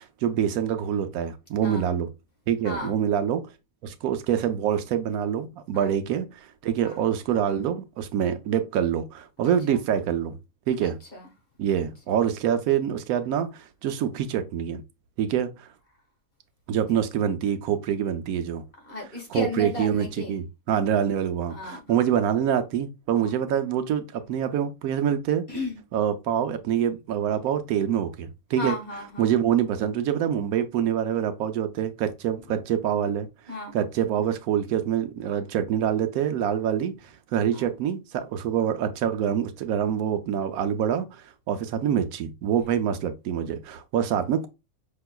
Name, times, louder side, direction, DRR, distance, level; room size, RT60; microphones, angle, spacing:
voice 1, 0.0-2.1 2.5-3.4 3.8-10.4 10.7-11.0 11.6-14.8 15.2-15.7 16.7-18.6 19.3-25.4 25.9-28.8 29.2-36.9 37.3-44.5, right 9 dB, 90° right, 1.1 m, -26 dB
voice 2, 2.6-2.9 5.7-6.0 6.8-7.0 9.4-9.8 10.8-11.2 18.8-20.4 21.5-22.1 23.1-23.4 25.5-25.8 28.6-29.3 33.5-33.8 37.5-37.7, left 2 dB, 45° left, 1.5 m, -35 dB
5.6 x 2.9 x 2.2 m
omnidirectional pair, 1.5 m